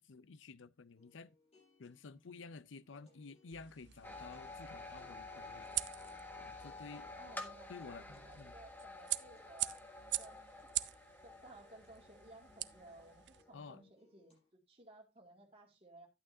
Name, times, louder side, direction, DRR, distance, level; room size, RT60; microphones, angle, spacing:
voice 1, 0.0-1.4 1.8-5.7 6.4-7.1 7.7-8.5 13.5-13.9, left 4 dB, 85° left, 0.6 m, -52 dB
sound 1, 0.9-14.5, left 1 dB, 35° left, 5.5 m, -71 dB
sound 2, 3.5-13.4, right 16 dB, 65° right, 0.4 m, -45 dB
sound 3, 4.0-13.6, left 2 dB, 10° left, 1.4 m, -51 dB
voice 2, 7.2-9.7 10.2-10.5 11.2-16.1, right 2 dB, 30° right, 2.3 m, -58 dB
11.5 x 8.8 x 2.7 m
head